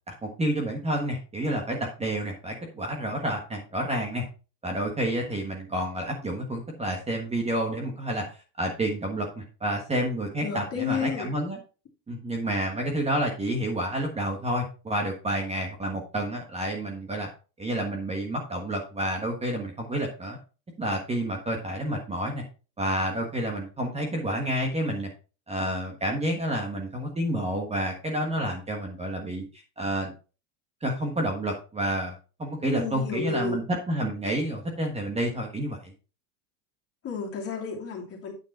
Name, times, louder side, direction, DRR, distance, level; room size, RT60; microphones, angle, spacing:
voice 1, 0.1-4.2 4.6-8.2 8.6-11.6 12.1-17.3 17.6-20.4 20.8-22.4 22.8-25.1 25.5-29.4 29.8-30.1 30.8-32.1 32.4-35.9, right 1 dB, 15° right, 1 dB, 1.4 m, -29 dB
voice 2, 10.4-11.3 32.6-33.6 37.0-38.3, left 6 dB, 30° left, -1 dB, 2.8 m, -32 dB
9.3 x 5.2 x 4.2 m, 0.34 s
supercardioid pair, 140°, 49 cm